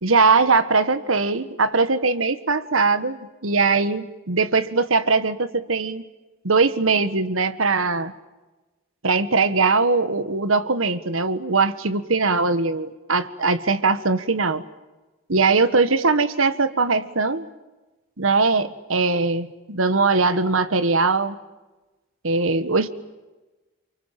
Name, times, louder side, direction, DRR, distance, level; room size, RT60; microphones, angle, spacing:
voice 1, 0.0-6.0 6.4-8.1 9.0-14.6 15.3-17.5 18.2-21.4 22.2-22.9, right 4 dB, 85° right, 12 dB, 1.6 m, -21 dB
29.0 x 25.5 x 7.6 m, 1.1 s
head